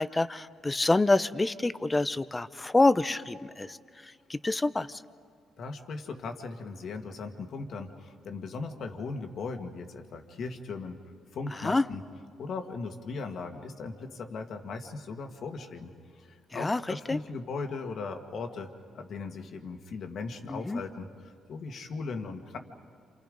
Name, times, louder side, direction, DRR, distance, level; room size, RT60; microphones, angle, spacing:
voice 1, 0.0-3.8 4.3-4.9 11.6-11.8 16.5-16.8 17.1-17.2 20.5-20.8, left 2 dB, 20° left, 14 dB, 0.6 m, -26 dB
voice 2, 5.6-11.0 11.3-12.0 12.4-22.6, left 4 dB, 65° left, 5 dB, 1.8 m, -38 dB
29.0 x 27.5 x 5.2 m, 2.1 s
cardioid pair, 90°, 0 cm